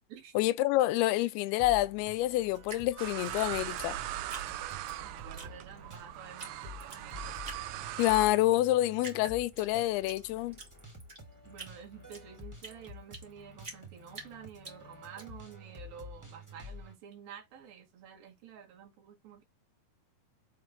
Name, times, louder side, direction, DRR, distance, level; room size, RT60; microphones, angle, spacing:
voice 1, 0.4-4.0 8.0-10.6, left 16 dB, 85° left, 2.5 m, -28 dB
sound 1, 1.6-16.9, left 2 dB, 5° right, 2.2 m, -50 dB
Drip, 2.6-5.0 5.3-6.0 6.4-6.5 6.8-7.6 8.0-8.6 9.0-10.2 10.5-13.3 13.6-15.2, right 3 dB, 30° right, 1.1 m, -46 dB
sound 2, 3.0-8.3, right 14 dB, 85° right, 2.0 m, -40 dB
voice 2, 5.0-7.4 11.5-19.4, right 8 dB, 65° right, 3.6 m, -50 dB
7.2 x 3.7 x 4.4 m
omnidirectional pair, 4.5 m